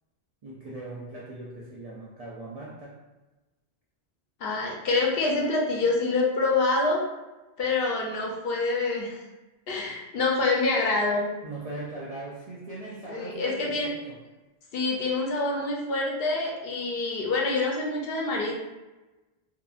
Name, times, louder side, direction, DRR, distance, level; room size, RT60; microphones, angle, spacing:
voice 1, 0.4-3.0 11.4-14.2, right 2 dB, 65° right, -5 dB, 0.3 m, -40 dB
voice 2, 4.4-7.0 7.6-9.2 9.7-11.3 13.1-13.9 14.7-18.5, left 3 dB, 65° left, -2 dB, 0.7 m, -26 dB
2.7 x 2.5 x 2.3 m, 1.1 s
omnidirectional pair, 1.2 m